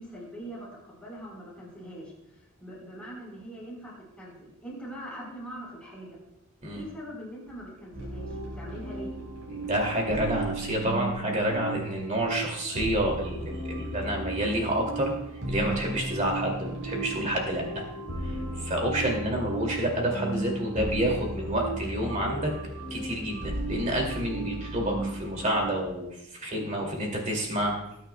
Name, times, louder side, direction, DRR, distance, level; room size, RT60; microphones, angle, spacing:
voice 1, 0.0-2.1 2.6-6.2 6.7-9.1, equal, 5° left, -5 dB, 4.2 m, -42 dB
sound 1, 7.9-25.7, right 2 dB, 65° right, 4.9 m, -35 dB
voice 2, 9.5-15.1 15.5-17.8 18.2-22.5 22.9-27.7, right 1 dB, 35° right, 0 dB, 2.5 m, -29 dB
19.5 x 9.0 x 2.3 m, 0.82 s
head